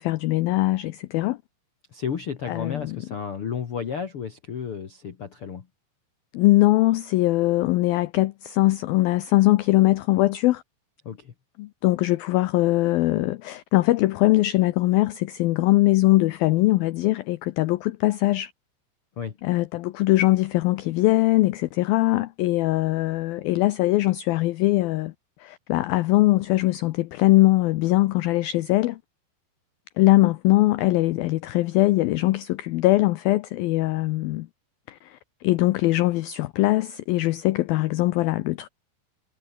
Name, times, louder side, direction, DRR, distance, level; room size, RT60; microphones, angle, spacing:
voice 1, 0.0-1.4 2.5-3.0 6.3-10.6 11.6-18.5 19.4-25.1 25.4-29.0 30.0-34.5 34.9-38.7, left 18 dB, 85° left, 2.1 m, -21 dB
voice 2, 1.9-5.7 11.0-11.3 19.2-19.4, left 7 dB, 60° left, 1.4 m, -32 dB
omnidirectional pair, 5.1 m